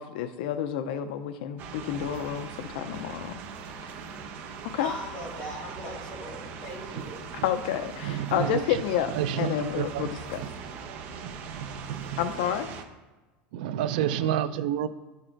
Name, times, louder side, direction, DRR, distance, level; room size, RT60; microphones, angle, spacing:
voice 1, 0.0-3.3 4.7-4.9 7.4-10.4 12.2-12.7, left 9 dB, 70° left, 9 dB, 0.5 m, -30 dB
sound 1, 1.6-12.8, right 5 dB, 35° right, 0.9 m, -41 dB
voice 2, 4.8-7.2, left 1 dB, 20° left, -5 dB, 3.3 m, -38 dB
voice 3, 8.0-8.8 9.1-10.1 10.4-10.5 11.2-12.2 13.5-14.9, right 10 dB, 70° right, 13 dB, 0.5 m, -30 dB
11.0 x 6.6 x 4.5 m, 1.2 s
supercardioid pair, 170°, 5 cm